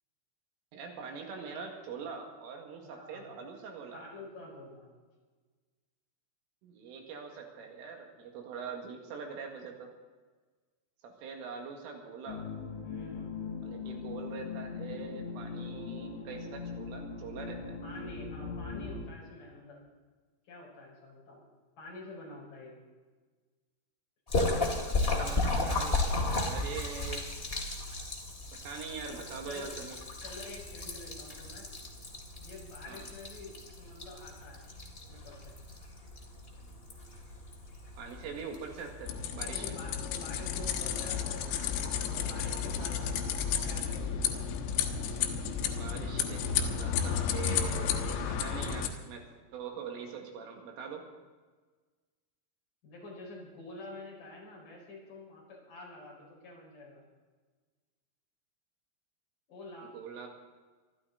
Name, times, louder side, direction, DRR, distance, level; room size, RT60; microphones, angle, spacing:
voice 1, 0.7-4.0 6.6-9.9 11.0-12.5 13.6-17.8 24.9-27.2 28.6-30.0 32.9-33.1 38.0-39.7 45.7-51.0 59.8-60.3, right 5 dB, 75° right, 2 dB, 4.4 m, -43 dB
voice 2, 2.8-3.3 3.9-4.9 12.8-13.4 17.8-19.8 20.5-21.4 21.8-22.8 29.1-29.2 29.5-29.7 30.2-31.7 32.4-34.7 35.1-35.6 39.5-41.7 42.1-44.5 52.8-57.0 59.5-59.9, left 2 dB, 40° left, -3 dB, 6.4 m, -48 dB
sound 1, 12.3-19.0, left 5 dB, 65° left, 4.6 m, -40 dB
Splash splatter, 24.3-39.3, left 2 dB, 25° left, 1.3 m, -35 dB
sound 2, 39.1-48.9, left 7 dB, 90° left, 4.1 m, -32 dB
24.0 x 13.5 x 4.0 m, 1.4 s
omnidirectional pair, 5.9 m